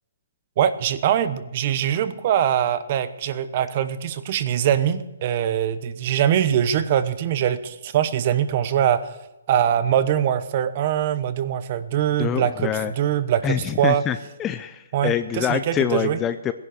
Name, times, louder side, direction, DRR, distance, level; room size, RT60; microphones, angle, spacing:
voice 1, 0.6-9.1 9.5-14.0 14.9-16.2, right 10 dB, 35° right, 13 dB, 1.0 m, -22 dB
voice 2, 12.2-12.9 13.4-16.5, left 9 dB, 15° left, 11 dB, 0.5 m, -25 dB
17.0 x 11.0 x 6.6 m, 1.0 s
hypercardioid pair, 165°, 0 cm